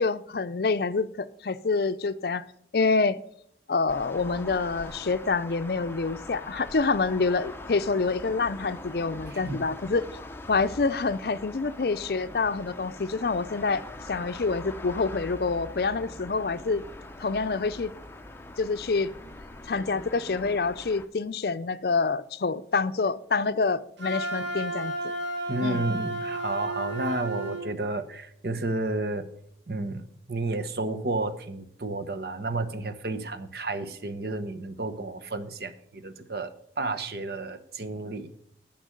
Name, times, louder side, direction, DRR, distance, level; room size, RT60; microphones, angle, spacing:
voice 1, 0.0-2.4 2.7-3.2 3.7-10.1 10.5-16.8 17.2-17.9 18.6-19.1 19.7-24.9 25.6-25.8, left 4 dB, 60° left, 13 dB, 0.5 m, -27 dB
sound 1, 3.9-21.1, left 1 dB, 15° left, 0.7 m, -42 dB
Wind instrument woodwind instrument, 24.0-27.7, right 1 dB, 85° right, 2.4 m, -32 dB
voice 2, 25.5-29.2 29.7-38.3, right 2 dB, 60° right, 8 dB, 1.0 m, -31 dB
10.0 x 5.9 x 7.6 m, 0.70 s
head